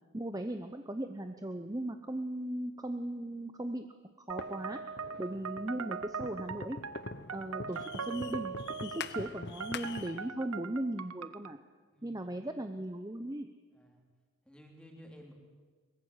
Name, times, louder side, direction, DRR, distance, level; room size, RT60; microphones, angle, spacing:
voice 1, 0.1-3.9 4.3-4.8 5.2-6.8 7.3-8.5 8.8-11.6 12.0-13.5, right 1 dB, 15° right, 7 dB, 0.7 m, -37 dB
sound 1, 4.3-11.5, right 6 dB, 85° right, 1.0 m, -41 dB
sound 2, 4.4-10.3, left 4 dB, 50° left, 0.8 m, -44 dB
voice 2, 5.1-5.4 7.3-7.6 11.9-12.3 13.7-14.0 14.4-15.3, equal, 5° left, 1 dB, 3.5 m, -55 dB
22.5 x 20.5 x 8.1 m, 1.5 s
head